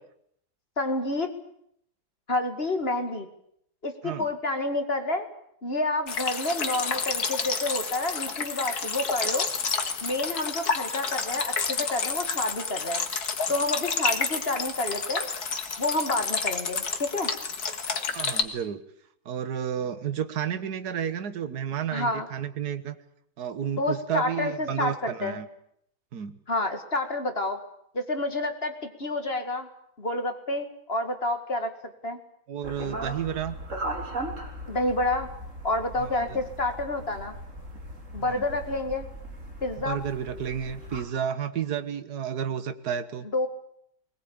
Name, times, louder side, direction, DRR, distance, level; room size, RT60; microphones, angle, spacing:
voice 1, 0.8-1.3 2.3-3.3 3.8-5.3 5.6-9.5 10.0-13.0 13.5-15.3 15.8-17.3 21.9-22.3 23.8-25.4 26.5-27.6 27.9-29.7 30.0-31.7 32.0-32.2 34.7-35.3 35.6-37.3 38.1-39.1 39.6-40.0 43.3-43.5, left 2 dB, 30° left, 7 dB, 2.2 m, -29 dB
sound 1, 6.1-18.4, left 5 dB, 55° left, 2.2 m, -30 dB
voice 2, 18.1-18.8 19.2-23.0 23.4-25.5 26.1-26.4 32.5-33.5 36.0-36.4 38.2-38.4 39.8-43.3, right 8 dB, 55° right, 11 dB, 1.8 m, -31 dB
sound 2, 32.6-41.0, right 1 dB, 40° right, 4.0 m, -38 dB
21.0 x 20.5 x 8.8 m, 0.71 s
omnidirectional pair, 2.1 m